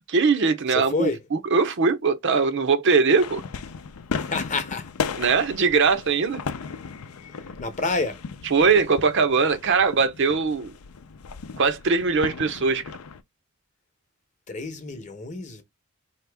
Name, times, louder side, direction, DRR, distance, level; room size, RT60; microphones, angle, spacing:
voice 1, 0.1-3.4 5.2-6.4 8.5-10.7 11.6-12.8, right 4 dB, 55° right, 0.6 m, -21 dB
voice 2, 0.7-1.2 4.2-4.9 7.3-8.2 14.5-15.6, left 3 dB, 35° left, 0.8 m, -29 dB
sound 1, 3.2-13.2, left 5 dB, 85° left, 0.5 m, -36 dB
4.5 x 2.9 x 3.4 m
head